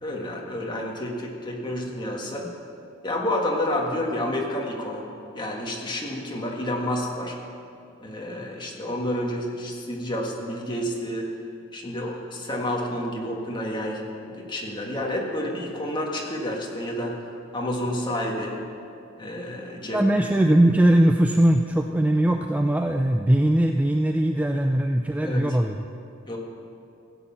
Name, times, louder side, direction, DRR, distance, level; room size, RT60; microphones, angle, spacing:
voice 1, 0.0-2.5 3.0-7.4 8.0-11.3 11.7-17.2 17.5-18.6 19.2-20.0 25.2-25.4 26.2-26.4, left 1 dB, 25° left, -1 dB, 1.8 m, -29 dB
voice 2, 19.8-25.8, right 1 dB, 5° right, 4 dB, 0.3 m, -20 dB
16.5 x 8.1 x 5.7 m, 2.5 s
head